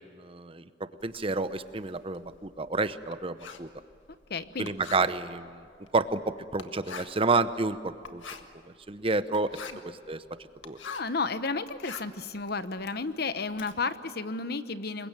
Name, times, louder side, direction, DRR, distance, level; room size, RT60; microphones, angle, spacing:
voice 1, 0.2-0.6 1.0-3.7 4.6-5.6 5.9-7.8 8.1-8.2 8.9-9.5 9.8-10.2 10.6-10.8, right 3 dB, 30° right, 12 dB, 0.8 m, -29 dB
Writing, 1.0-11.2 11.6-13.7, left 5 dB, 80° left, 1.7 m, -46 dB
voice 2, 4.3-4.7 9.7-9.8 10.8-15.1, left 4 dB, 55° left, 12 dB, 1.0 m, -32 dB
27.5 x 22.5 x 9.0 m, 2.4 s
head